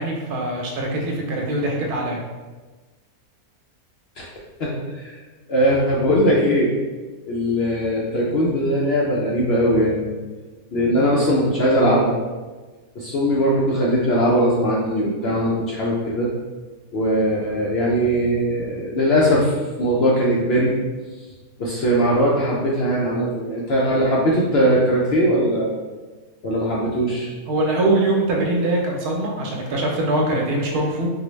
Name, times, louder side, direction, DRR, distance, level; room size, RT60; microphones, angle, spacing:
voice 1, 0.0-2.2 27.5-31.1, right 2 dB, 90° right, 0 dB, 1.2 m, -22 dB
voice 2, 4.6-5.2 5.5-6.7 7.3-10.1 10.7-12.2 13.0-16.3 16.9-20.7 21.6-25.8 26.4-27.3, equal, 65° left, -5 dB, 0.6 m, -20 dB
4.5 x 2.0 x 3.0 m, 1.3 s
omnidirectional pair, 1.6 m